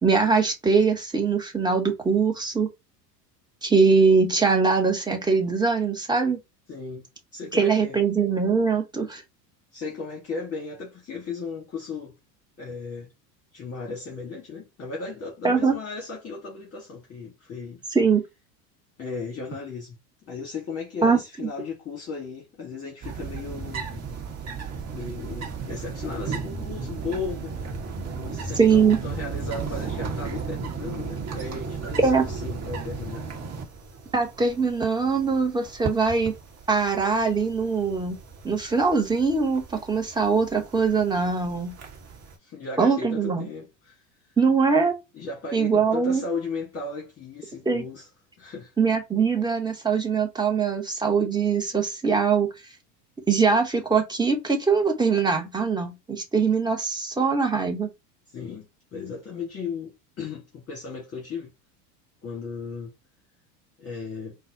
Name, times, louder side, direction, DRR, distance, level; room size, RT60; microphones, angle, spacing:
voice 1, 0.0-2.7 3.6-6.4 7.5-9.2 15.4-15.8 17.9-18.2 21.0-21.5 28.6-29.0 32.0-32.2 34.1-36.3 36.7-38.2 38.4-41.8 42.8-43.5 44.4-45.0 45.5-46.2 47.6-47.9 48.8-52.5 53.3-57.9, right 5 dB, 10° right, 0.9 m, -22 dB
voice 2, 6.7-7.0 7.3-8.0 9.7-12.1 12.6-13.1 13.5-17.8 19.0-19.9 20.2-23.9 24.9-27.6 28.1-33.3 42.4-44.0 44.3-44.4 45.1-48.1 48.4-48.7 58.3-61.5 62.2-62.9 63.8-64.4, left 4 dB, 30° left, 1.4 m, -36 dB
sound 1, 23.0-42.3, right 5 dB, 30° right, 1.2 m, -35 dB
3.9 x 2.3 x 2.7 m
hypercardioid pair, 85°, 49 cm